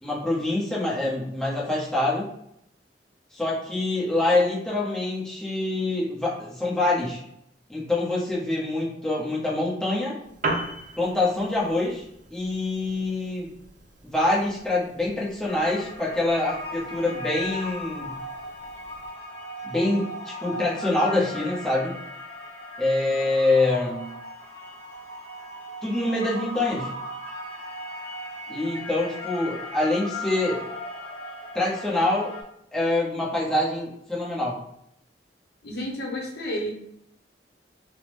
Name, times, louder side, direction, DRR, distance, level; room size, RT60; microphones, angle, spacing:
voice 1, 0.0-2.3 3.3-7.2 7.7-10.1 11.0-12.0 12.3-13.5 14.0-18.1 19.6-21.9 22.8-24.1 25.8-26.9 28.5-30.6 31.5-32.3 32.7-34.6, left 2 dB, 5° left, -6 dB, 0.8 m, -25 dB
Piano, 10.2-19.2, right 2 dB, 45° right, 0.5 m, -39 dB
sound 1, 15.5-32.4, left 1 dB, 40° left, 0.9 m, -37 dB
voice 2, 35.6-36.7, equal, 65° left, -1 dB, 0.7 m, -31 dB
3.4 x 2.0 x 3.1 m, 0.75 s
head